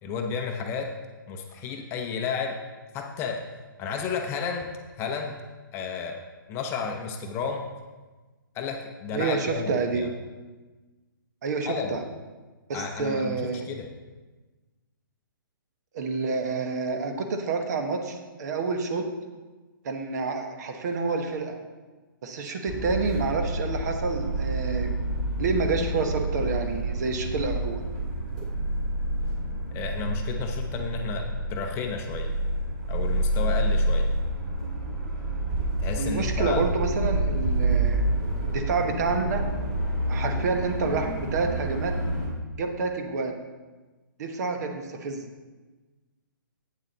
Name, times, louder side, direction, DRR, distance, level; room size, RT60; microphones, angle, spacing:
voice 1, 0.0-0.9 1.3-2.6 2.9-3.5 3.8-4.7 5.0-5.3 5.7-6.2 6.5-7.7 8.5-10.1 11.7-12.0 12.7-13.9 29.7-32.3 32.9-34.1 35.8-36.7, left 5 dB, 20° left, 3 dB, 0.7 m, -32 dB
voice 2, 9.1-10.1 11.4-12.0 12.7-13.7 15.9-19.1 19.8-21.6 22.2-24.9 25.4-27.8 35.9-38.1 38.4-39.5 40.1-42.0 42.6-43.4 44.2-45.3, right 4 dB, 50° right, 5 dB, 1.1 m, -28 dB
sound 1, 22.7-42.3, right 1 dB, 30° right, 2.9 m, -28 dB
8.5 x 7.2 x 3.9 m, 1.3 s
hypercardioid pair, 140°, 12 cm